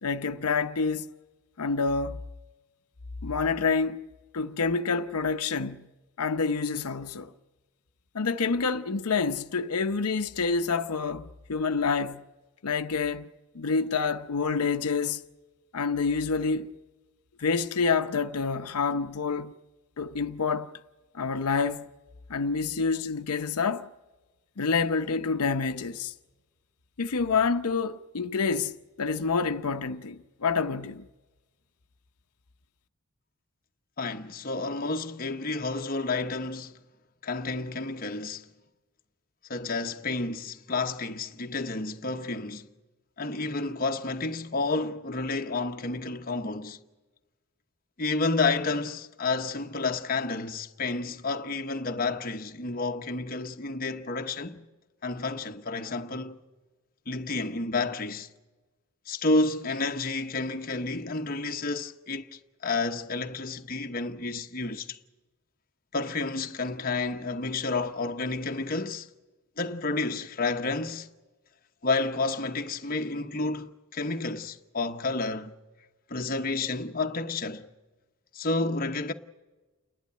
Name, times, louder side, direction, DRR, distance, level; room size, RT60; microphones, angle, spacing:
voice 1, 0.0-1.1 1.6-2.2 3.2-4.0 4.3-5.9 6.2-7.3 8.1-12.2 12.6-13.3 13.5-15.2 15.7-16.7 17.4-19.5 20.0-20.7 21.1-21.9 22.3-23.9 24.6-26.1 27.0-31.1, left 4 dB, 85° left, 0.7 m, -27 dB
voice 2, 34.0-36.8 37.2-38.5 39.5-42.7 43.2-46.8 48.0-54.6 55.0-56.4 57.1-58.3 59.1-65.0 65.9-69.1 69.6-71.1 71.8-75.5 76.1-77.7 78.3-79.1, left 3 dB, 40° left, 0.9 m, -30 dB
29.5 x 11.5 x 9.4 m
head